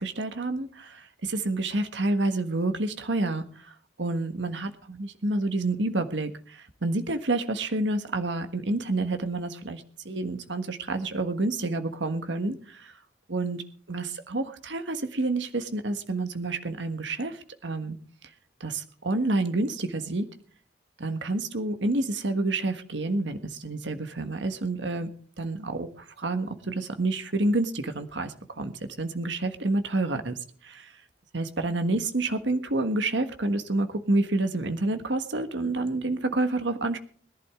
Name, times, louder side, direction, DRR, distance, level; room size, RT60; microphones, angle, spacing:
voice 1, 0.0-12.9 13.3-18.0 18.6-20.3 21.0-25.1 25.4-31.0 31.3-37.0, right 2 dB, 75° right, 8 dB, 1.5 m, -29 dB
21.0 x 11.5 x 3.7 m, 0.43 s
head